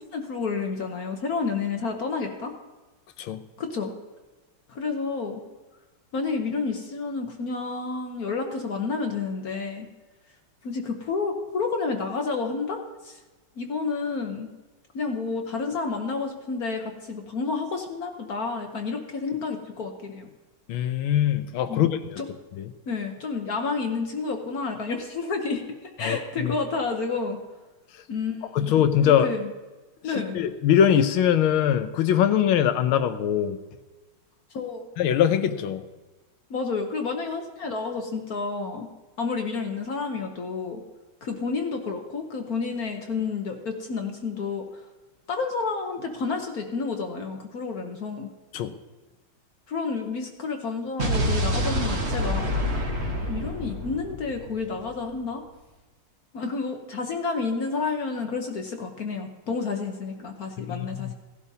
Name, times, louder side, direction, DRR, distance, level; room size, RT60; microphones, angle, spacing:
voice 1, 0.0-2.5 3.6-3.9 4.7-5.4 6.1-9.9 10.6-13.2 13.6-14.5 14.9-20.3 21.7-21.8 22.2-22.3 22.9-27.4 28.1-28.7 29.0-29.5 30.0-30.4 34.5-34.9 36.5-38.9 39.2-40.8 41.2-44.8 45.3-48.3 49.7-52.4 53.3-55.4 56.3-61.1, left 4 dB, 55° left, 4 dB, 1.2 m, -30 dB
voice 2, 20.7-22.2 22.6-22.7 26.0-26.5 28.5-29.3 30.0-33.6 35.0-35.8 48.5-48.7 60.6-61.1, left 9 dB, 75° left, 10 dB, 1.5 m, -22 dB
Explosion, 51.0-55.1, equal, 40° right, 1.2 m, -27 dB
17.0 x 12.0 x 2.8 m, 1.2 s
omnidirectional pair, 2.3 m